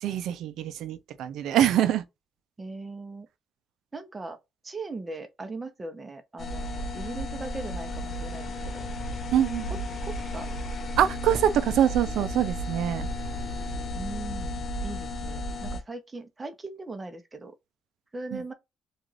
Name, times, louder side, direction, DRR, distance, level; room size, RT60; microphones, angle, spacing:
voice 1, 0.0-2.0 9.3-9.7 11.0-13.1 18.3-18.4, right 10 dB, 80° right, 0.3 m, -24 dB
voice 2, 2.6-3.3 3.9-4.4 4.6-8.9 9.7-10.5 11.3-11.4 13.9-17.5 18.1-18.5, right 3 dB, 25° right, 0.7 m, -39 dB
sound 1, 6.4-15.8, left 1 dB, 50° left, 0.6 m, -33 dB
2.4 x 2.4 x 3.1 m
cardioid pair, 90°, 0 cm